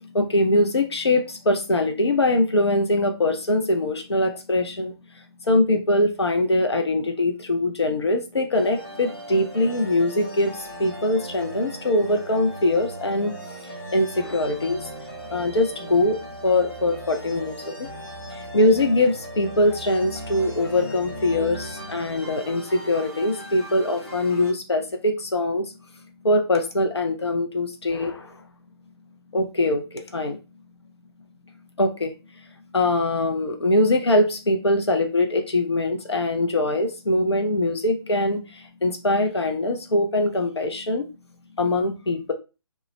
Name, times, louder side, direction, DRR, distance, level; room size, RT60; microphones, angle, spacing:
voice 1, 0.0-4.9 5.4-13.3 13.6-14.9 15.3-17.9 18.3-25.7 26.2-28.4 29.3-30.4 31.8-32.1 32.7-41.0 41.6-42.3, left 1 dB, 75° left, 0.5 m, -22 dB
sound 1, 8.5-24.5, right 1 dB, 10° left, 0.5 m, -38 dB
2.2 x 2.0 x 3.0 m
figure-of-eight pair, 145°, 14 cm